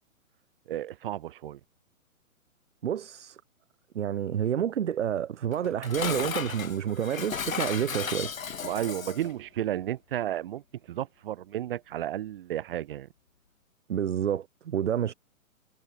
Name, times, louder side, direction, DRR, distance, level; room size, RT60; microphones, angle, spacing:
voice 1, 0.7-1.6 8.6-10.6 10.9-13.1, right 12 dB, 40° right, 1.7 m, -32 dB
voice 2, 2.8-3.4 3.9-8.3 13.9-15.1, right 9 dB, 55° right, 0.7 m, -29 dB
Dishes pots and pans, 5.5-9.3, left 6 dB, 65° left, 1.6 m, -35 dB
figure-of-eight pair, 130°, 43 cm